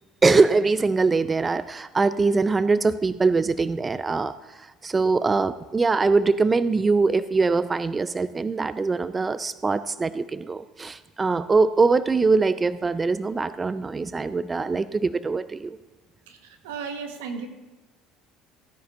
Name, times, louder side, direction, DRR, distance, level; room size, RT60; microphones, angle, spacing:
voice 1, 0.2-15.8, right 4 dB, 25° right, 14 dB, 0.4 m, -22 dB
voice 2, 16.3-17.5, right 5 dB, 85° right, 5 dB, 1.3 m, -35 dB
15.5 x 10.0 x 2.6 m, 1.1 s
hypercardioid pair, 75°, 0 cm